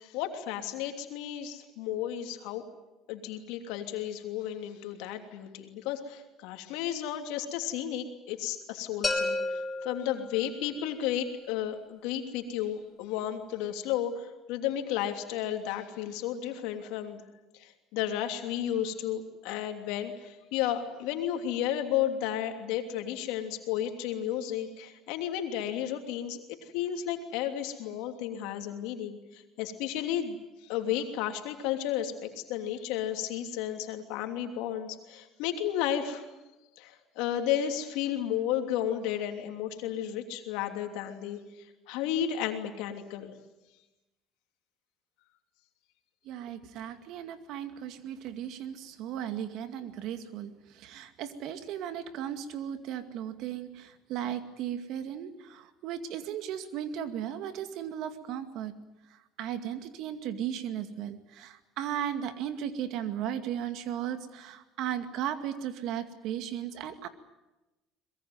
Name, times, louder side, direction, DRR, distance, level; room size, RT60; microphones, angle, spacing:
voice 1, 0.0-2.6 3.1-17.2 17.6-26.4 26.7-36.3 36.8-43.3, left 10 dB, 75° left, 5 dB, 3.0 m, -33 dB
sound 1, 9.0-10.9, left 2 dB, 20° left, 5.5 m, -32 dB
voice 2, 46.2-58.7 59.1-67.1, right 10 dB, 65° right, 9 dB, 2.2 m, -36 dB
23.0 x 21.5 x 9.5 m, 1.0 s
supercardioid pair, 85°, 0 cm